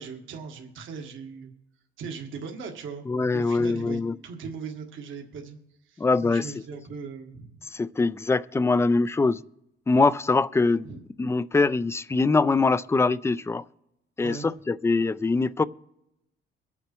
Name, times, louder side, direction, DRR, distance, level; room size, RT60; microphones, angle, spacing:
voice 1, 0.0-1.5 2.0-3.1 3.3-5.6 5.8-7.6 10.8-11.0 14.2-14.5, right 5 dB, 75° right, 1.5 m, -39 dB
voice 2, 3.1-4.1 6.0-6.5 7.7-9.4 9.9-10.9 11.2-13.6 14.2-15.6, left 3 dB, 15° left, 0.3 m, -23 dB
23.0 x 8.4 x 3.0 m
cardioid pair, 90°, 20 cm